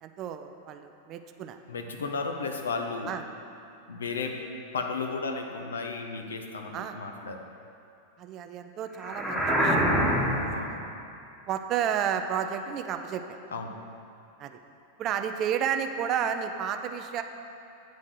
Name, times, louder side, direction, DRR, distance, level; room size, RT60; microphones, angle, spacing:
voice 1, 0.0-1.6 3.1-3.2 6.7-7.0 8.2-10.2 10.5-10.8 11.5-13.4 14.4-14.6 15.0-17.2, right 8 dB, 35° right, 7 dB, 0.5 m, -32 dB
voice 2, 1.7-3.1 3.9-4.4 4.7-7.4 10.5-10.7 13.5-13.7, left 4 dB, 70° left, 3 dB, 0.7 m, -33 dB
sound 1, 9.0-10.6, equal, ahead, 1.2 m, -25 dB
9.0 x 4.1 x 6.5 m, 2.7 s
figure-of-eight pair, 90°, 0 cm